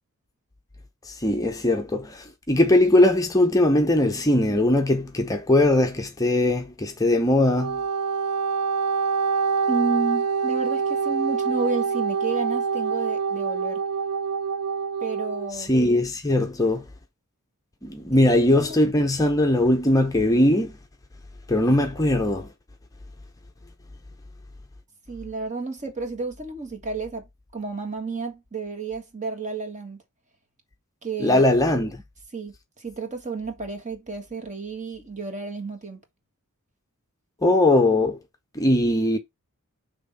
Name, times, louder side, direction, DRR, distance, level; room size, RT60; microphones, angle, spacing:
voice 1, 1.0-7.8 15.5-16.8 17.8-20.7 21.5-22.5 31.2-32.0 37.4-38.2 38.5-39.2, left 1 dB, 15° left, 0.6 m, -20 dB
Wind instrument woodwind instrument, 7.5-15.5, right 5 dB, 85° right, 0.4 m, -25 dB
voice 2, 9.7-13.8 15.0-15.7 18.1-18.8 25.1-27.3 27.5-30.0 31.0-31.4 32.3-36.0, right 4 dB, 35° right, 1.6 m, -31 dB
6.0 x 3.4 x 5.5 m
head